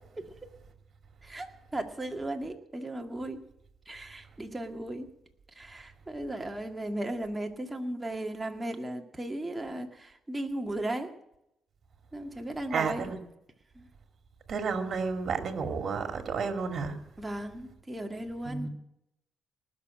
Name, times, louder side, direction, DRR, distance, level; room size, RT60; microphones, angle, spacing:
voice 1, 1.2-3.4 3.9-5.1 5.6-11.1 12.1-13.1 13.8-13.9 17.2-18.7, right 1 dB, 15° right, 3 dB, 2.0 m, -36 dB
voice 2, 12.7-13.2 14.5-17.0 18.4-18.7, right 5 dB, 50° right, 5 dB, 2.4 m, -31 dB
19.0 x 6.7 x 8.8 m, 0.80 s
cardioid pair, 90°, 0 cm